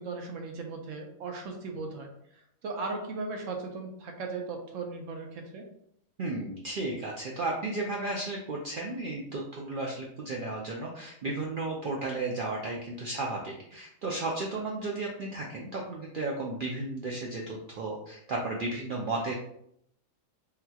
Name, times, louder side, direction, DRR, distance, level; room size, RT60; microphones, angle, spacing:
voice 1, 0.0-2.1 2.3-5.7, right 3 dB, 70° right, 3 dB, 0.9 m, -37 dB
voice 2, 6.2-19.3, right 2 dB, 90° right, -2 dB, 0.4 m, -34 dB
3.7 x 2.8 x 2.3 m, 0.72 s
omnidirectional pair, 1.5 m